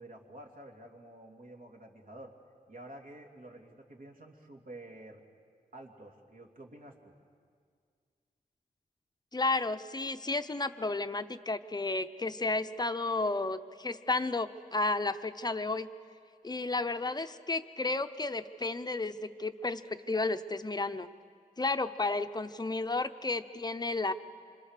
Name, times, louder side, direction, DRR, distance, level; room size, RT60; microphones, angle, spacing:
voice 1, 0.0-2.3 2.7-5.2 5.7-7.1, right 1 dB, 60° right, 1 dB, 2.9 m, -50 dB
voice 2, 9.3-15.9 16.4-21.1 21.6-24.1, left 3 dB, 25° left, 10 dB, 0.7 m, -32 dB
27.0 x 26.5 x 6.7 m, 2.1 s
wide cardioid pair, 135°, 16 cm